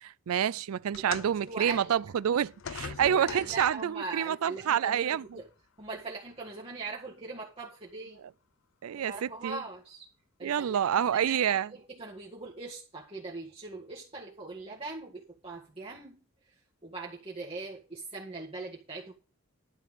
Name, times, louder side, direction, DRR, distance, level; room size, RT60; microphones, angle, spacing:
voice 1, 0.0-5.2 8.8-9.6 10.4-11.7, right 9 dB, 85° right, 0.4 m, -28 dB
sound 1, 0.9-4.0 5.0-5.1 6.0-6.1, left 6 dB, 65° left, 0.5 m, -43 dB
voice 2, 1.0-1.9 2.8-5.5 5.8-8.2 8.9-10.1 10.4-16.2 16.5-16.6 16.8-19.1, right 3 dB, 25° right, 1.8 m, -41 dB
12.0 x 4.6 x 7.2 m
head